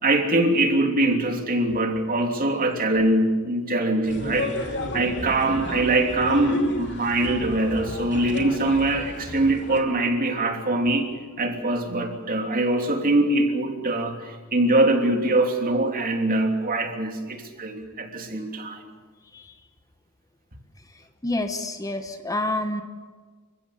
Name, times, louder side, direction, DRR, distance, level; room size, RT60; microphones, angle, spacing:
voice 1, 0.0-11.1 11.4-18.8, right 2 dB, 40° right, 4 dB, 3.1 m, -23 dB
sound 1, 4.1-9.8, left 2 dB, 55° left, 2.9 m, -33 dB
voice 2, 21.2-22.8, left 2 dB, 15° left, 7 dB, 1.1 m, -28 dB
29.0 x 16.0 x 8.4 m, 1.5 s
head